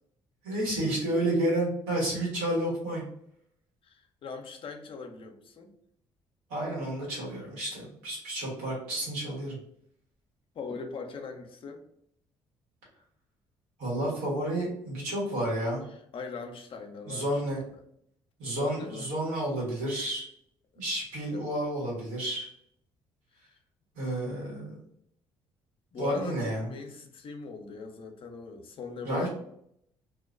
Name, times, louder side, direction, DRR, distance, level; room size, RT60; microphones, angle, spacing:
voice 1, 0.4-3.0 6.5-9.6 13.8-15.8 17.1-17.6 18.4-20.2 20.8-22.5 24.0-24.8 26.0-26.7 29.0-29.3, right 1 dB, 80° right, -5 dB, 1.2 m, -30 dB
voice 2, 3.8-5.7 10.5-11.8 15.9-17.6 18.5-19.1 21.3-21.4 23.3-23.5 25.9-29.3, left 5 dB, 50° left, 5 dB, 0.5 m, -41 dB
2.3 x 2.2 x 2.4 m, 0.71 s
hypercardioid pair, 55°, 11 cm